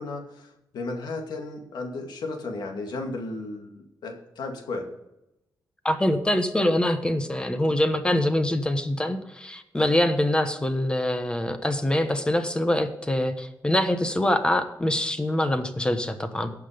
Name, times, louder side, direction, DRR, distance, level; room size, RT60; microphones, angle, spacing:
voice 1, 0.0-4.9, left 2 dB, 80° left, 3 dB, 2.2 m, -34 dB
voice 2, 5.8-16.5, left 1 dB, 15° left, 8 dB, 1.2 m, -24 dB
16.5 x 6.0 x 5.2 m, 0.88 s
cardioid pair, 110°, 7 cm